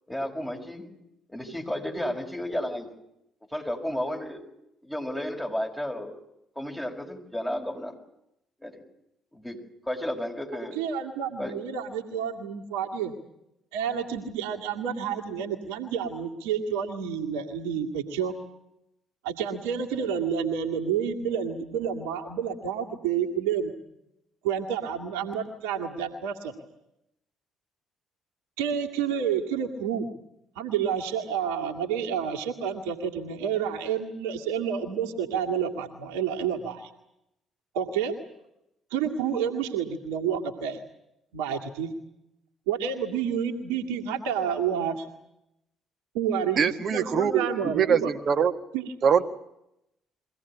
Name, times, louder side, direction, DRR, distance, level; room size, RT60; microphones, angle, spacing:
voice 1, 0.1-0.9 1.3-2.9 3.5-4.4 4.8-6.2 6.6-7.9 8.6-8.8 9.3-9.6 9.9-10.8 11.4-11.6, left 1 dB, 10° left, 2 dB, 5.9 m, -32 dB
voice 2, 10.8-13.1 13.7-18.3 19.2-23.7 24.4-26.5 28.6-30.1 30.6-36.9 37.7-38.1 38.9-40.8 41.3-41.9 42.7-45.1 46.1-48.1 48.7-48.8, right 7 dB, 75° right, 2 dB, 2.1 m, -29 dB
voice 3, 46.6-47.5 47.7-48.5 49.0-49.3, right 7 dB, 50° right, 11 dB, 1.7 m, -23 dB
23.5 x 17.0 x 10.0 m, 0.83 s
hypercardioid pair, 50°, 0 cm